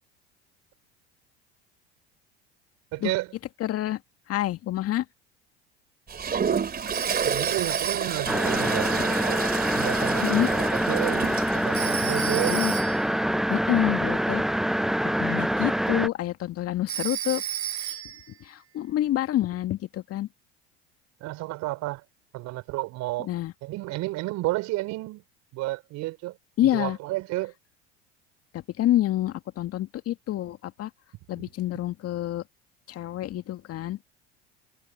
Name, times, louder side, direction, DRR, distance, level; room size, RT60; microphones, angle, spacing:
voice 1, 2.9-3.3 6.5-6.6 7.2-9.4 9.7-11.3 11.5-12.6 21.2-22.0 22.3-23.3 23.6-25.2 25.5-26.3 26.7-27.5, right 19 dB, 55° right, 4.6 m, -31 dB
voice 2, 3.6-4.0 4.3-5.1 10.2-10.5 12.2-12.7 13.5-14.4 15.2-17.4 17.8-18.0 18.4-20.3 23.2-23.5 26.6-27.0 28.5-30.9 31.3-32.4 32.9-34.0, left 13 dB, 45° left, 2.2 m, -27 dB
Toilet flush, 6.1-11.9, right 6 dB, 30° right, 3.3 m, -30 dB
Telephone, 6.9-8.3 11.7-13.1 16.9-18.3, right 12 dB, 85° right, 0.7 m, -33 dB
sound 1, 8.3-16.1, equal, ahead, 0.9 m, -25 dB
hypercardioid pair, 70°, 32 cm